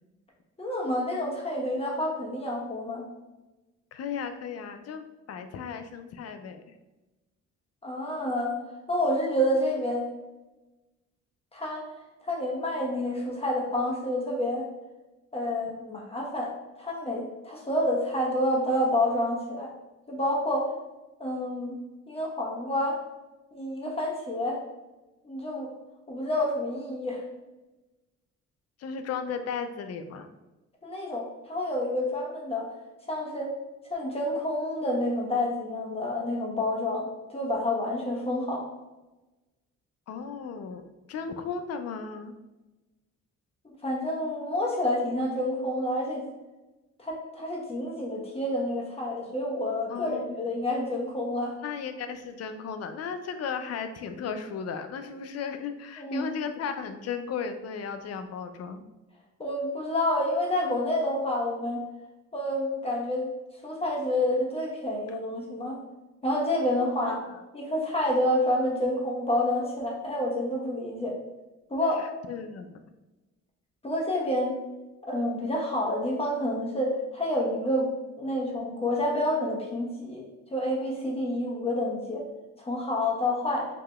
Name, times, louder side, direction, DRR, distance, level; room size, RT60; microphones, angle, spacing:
voice 1, 0.6-3.0 7.8-8.5 8.9-10.1 11.5-11.9 12.2-14.6 15.3-16.5 16.8-19.7 20.1-20.7 21.2-21.7 22.1-23.0 23.5-24.6 25.2-25.7 26.1-27.2 30.8-32.7 33.1-33.5 33.9-38.6 43.8-46.3 47.0-51.6 56.0-56.3 59.4-61.8 62.3-63.3 63.6-65.8 66.2-67.2 67.5-71.1 71.7-72.1 73.8-74.5 75.1-77.9 78.2-80.2 80.5-82.2 82.6-83.7, left 1 dB, 20° left, -2 dB, 1.1 m, -28 dB
voice 2, 3.9-6.6 28.8-30.3 40.1-42.3 49.9-50.4 51.6-58.9 67.0-67.1 72.0-72.8, left 6 dB, 55° left, 8 dB, 0.5 m, -35 dB
4.8 x 2.8 x 2.4 m, 1.1 s
cardioid pair, 90°, 30 cm